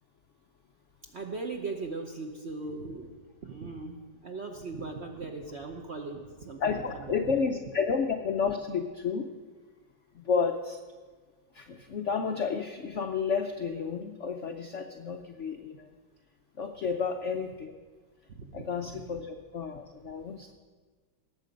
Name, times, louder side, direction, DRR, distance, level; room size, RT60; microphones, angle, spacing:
voice 1, 1.1-3.1 3.4-4.0 4.2-7.4 18.3-18.7, right 3 dB, 55° right, 3 dB, 0.8 m, -38 dB
voice 2, 6.6-9.3 10.1-10.8 11.5-15.9 16.6-17.7 18.5-20.5, left 5 dB, 70° left, 5 dB, 0.7 m, -31 dB
18.0 x 7.4 x 5.2 m, 1.4 s
omnidirectional pair, 2.0 m